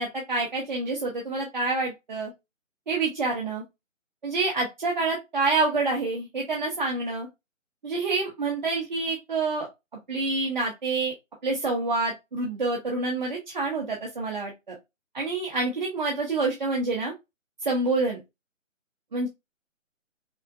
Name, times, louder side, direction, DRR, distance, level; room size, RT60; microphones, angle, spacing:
voice 1, 0.0-2.3 2.9-3.6 4.2-7.3 7.8-9.7 10.1-11.1 11.4-14.7 15.1-17.1 17.6-18.2 19.1-19.3, right 3 dB, 35° right, -1 dB, 0.9 m, -27 dB
5.6 x 2.1 x 2.5 m, 0.21 s
figure-of-eight pair, 155°, 40 cm